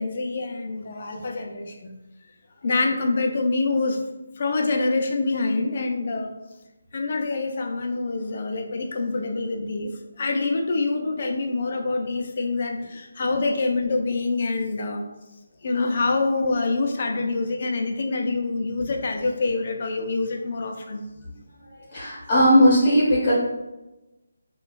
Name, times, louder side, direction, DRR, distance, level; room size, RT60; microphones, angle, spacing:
voice 1, 0.0-1.9 2.6-4.0 4.4-6.3 6.9-9.9 10.2-15.0 15.6-21.0, left 3 dB, 45° left, 3 dB, 0.4 m, -26 dB
voice 2, 21.9-23.3, equal, 25° left, -7 dB, 1.0 m, -17 dB
3.9 x 2.3 x 2.3 m, 1.0 s
figure-of-eight pair, 165°, 0 cm